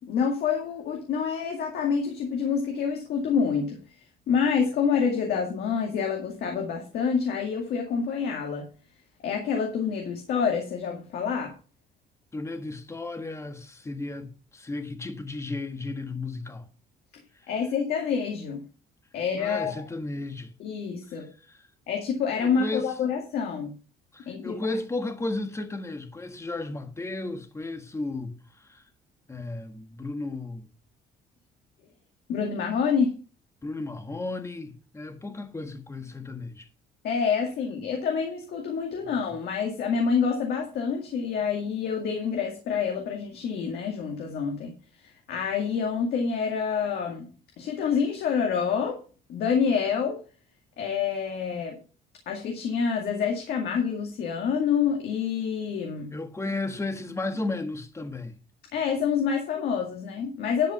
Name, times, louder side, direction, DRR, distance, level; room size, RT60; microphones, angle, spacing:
voice 1, 0.0-11.6 17.1-17.2 17.5-18.6 19.1-19.9 20.6-21.3 21.9-23.8 24.3-24.7 32.3-33.2 37.0-47.3 47.6-49.0 49.3-50.2 50.8-51.8 52.3-56.1 58.7-60.7, left 6 dB, 70° left, 2.1 m, -27 dB
voice 2, 12.3-16.7 17.3-17.5 19.4-20.5 22.4-22.9 24.1-28.8 29.3-30.7 33.6-36.7 56.1-58.4, left 2 dB, 15° left, 1.5 m, -34 dB
11.0 x 5.1 x 5.7 m
cardioid pair, 110°, 17 cm